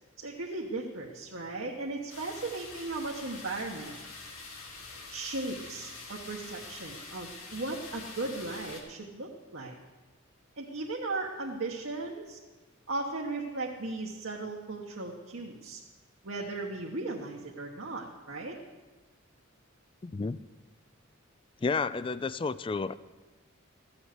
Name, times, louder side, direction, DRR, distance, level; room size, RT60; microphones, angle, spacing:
voice 1, 0.2-4.0 5.1-9.7 10.6-12.4 12.9-15.8 16.2-18.6, right 2 dB, 65° right, -2 dB, 1.2 m, -37 dB
sound 1, 2.1-8.8, left 3 dB, 80° left, 2.8 m, -45 dB
voice 2, 20.0-20.4 21.6-22.9, left 4 dB, 25° left, 17 dB, 0.3 m, -31 dB
14.0 x 7.2 x 8.1 m, 1.3 s
head